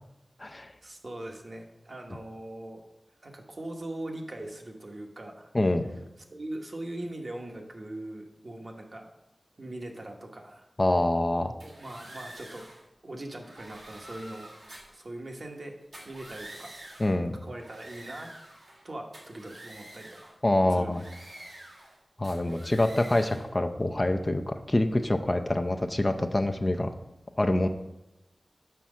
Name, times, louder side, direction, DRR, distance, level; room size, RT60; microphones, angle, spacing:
voice 1, 0.8-2.8 3.2-5.5 6.3-9.1 9.6-10.7 11.6-12.7 13.0-14.5 14.9-15.7 16.0-18.3 18.8-20.4 20.7-21.0, right 1 dB, 55° right, 2 dB, 1.1 m, -41 dB
voice 2, 10.8-11.5 17.0-17.3 20.4-21.0 22.2-26.9 27.4-27.7, left 1 dB, 30° left, 5 dB, 0.5 m, -26 dB
sound 1, 11.6-12.8 13.4-15.0 15.8-17.2 17.5-18.8 19.1-20.3 20.9-21.9 22.2-23.5, right 1 dB, 85° right, 1.7 m, -47 dB
5.7 x 4.6 x 6.2 m, 0.98 s
wide cardioid pair, 70°, 0 cm